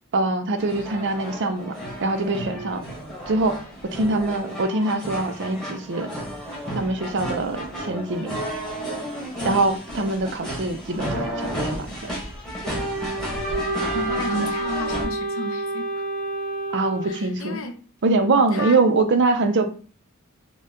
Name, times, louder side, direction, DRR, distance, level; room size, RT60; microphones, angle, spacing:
voice 1, 0.1-2.8 3.3-3.6 3.9-6.1 6.7-8.4 9.4-12.1 16.7-17.6 18.0-19.7, right 3 dB, 55° right, 0.5 m, -23 dB
sound 1, 0.6-15.0, equal, 5° left, 1.2 m, -32 dB
Wind instrument woodwind instrument, 13.4-17.4, right 2 dB, 40° left, 0.8 m, -29 dB
voice 2, 13.9-16.0 17.0-17.8 18.5-18.8, left 1 dB, 70° left, 0.7 m, -32 dB
3.9 x 2.2 x 3.7 m
head